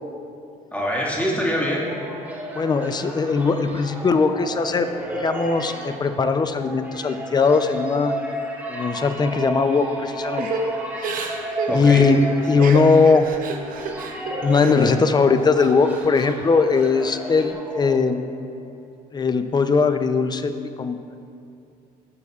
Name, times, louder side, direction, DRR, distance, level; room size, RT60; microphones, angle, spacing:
voice 1, 0.7-1.8 11.7-12.1, equal, 10° left, -4 dB, 1.8 m, -24 dB
sound 1, 1.7-18.4, right 1 dB, 10° right, 1.2 m, -33 dB
voice 2, 2.5-8.2 8.7-10.5 11.1-11.3 11.7-12.2 12.5-13.3 14.4-18.2 19.1-21.2, left 4 dB, 25° left, 9 dB, 0.5 m, -20 dB
Crying sobbing / Breathing, 10.4-15.0 15.3-16.3 16.7-17.5, right 4 dB, 55° right, 0.8 m, -31 dB
16.0 x 6.9 x 2.4 m, 2.5 s
cardioid pair, 110°, 17 cm